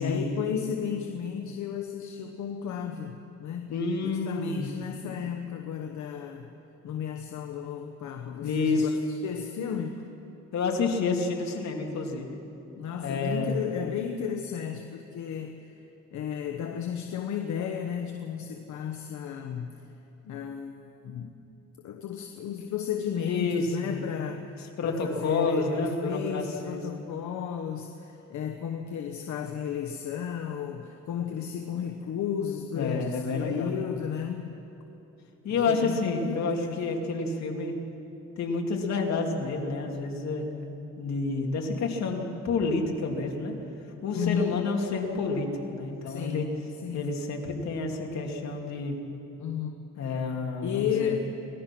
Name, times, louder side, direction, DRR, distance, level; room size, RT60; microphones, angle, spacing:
voice 1, 0.0-3.7 4.0-6.5 6.8-10.0 12.8-15.8 16.1-19.8 20.2-20.7 21.0-21.3 21.8-24.5 24.8-34.5 35.6-36.1 36.6-36.9 44.1-44.6 46.0-46.5 46.8-47.0 49.4-49.8 50.6-51.2, left 8 dB, 80° left, 4 dB, 1.1 m, -33 dB
voice 2, 3.7-4.7 8.4-8.9 10.5-12.4 13.0-13.6 23.2-24.1 24.5-26.8 32.7-33.7 35.4-37.8 38.4-43.5 44.0-46.5 46.9-49.0 50.0-51.2, left 3 dB, 65° left, 1 dB, 2.7 m, -29 dB
25.0 x 18.0 x 6.1 m, 2.9 s
cardioid pair, 145°, 29 cm